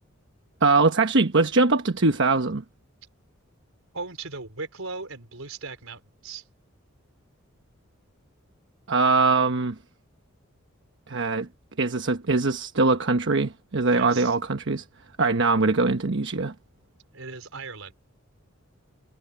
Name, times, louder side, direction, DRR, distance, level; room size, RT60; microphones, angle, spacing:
voice 1, 0.6-2.6 8.9-9.8 11.1-11.5 11.8-14.8 15.2-16.5, right 3 dB, 60° right, 1.1 m, -22 dB
voice 2, 3.9-6.4 13.9-14.3 17.1-17.9, right 4 dB, 80° right, 4.3 m, -38 dB
head